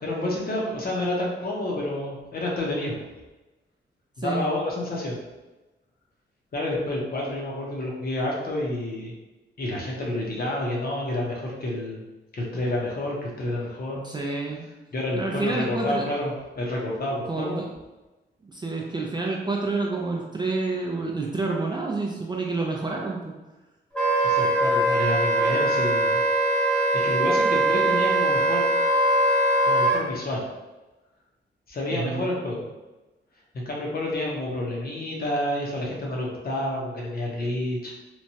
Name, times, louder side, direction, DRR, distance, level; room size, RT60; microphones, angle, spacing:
voice 1, 0.0-3.0 4.2-5.2 6.5-9.1 9.6-12.0 12.3-14.0 14.9-17.6 24.2-26.2 26.9-28.7 29.6-30.4 31.7-32.7 33.5-37.9, left 1 dB, 50° left, -3 dB, 0.8 m, -29 dB
voice 2, 14.0-14.6 15.1-16.0 17.3-17.7 18.4-23.3 31.9-32.3, right 3 dB, 25° right, -2 dB, 0.3 m, -28 dB
Wind instrument woodwind instrument, 23.9-30.0, right 1 dB, 5° left, 0.9 m, -21 dB
3.0 x 2.2 x 2.7 m, 1.1 s
wide cardioid pair, 120°, 19 cm